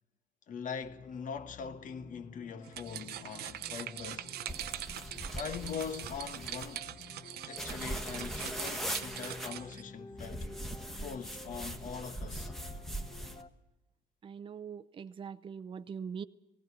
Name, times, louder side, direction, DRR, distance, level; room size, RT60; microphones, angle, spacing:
voice 1, 0.5-4.4 5.4-6.9 7.5-10.5 11.0-12.5, left 6 dB, 50° left, 1.2 m, -42 dB
sound 1, 0.8-13.5, left 4 dB, 35° left, 1.0 m, -52 dB
sound 2, 2.6-9.8, right 12 dB, 70° right, 0.7 m, -43 dB
sound 3, 4.5-6.8 7.6-9.5 10.2-13.4, right 1 dB, ahead, 1.3 m, -41 dB
voice 2, 14.2-16.2, right 6 dB, 30° right, 0.6 m, -42 dB
18.0 x 17.0 x 9.6 m
cardioid pair, 110°, 17 cm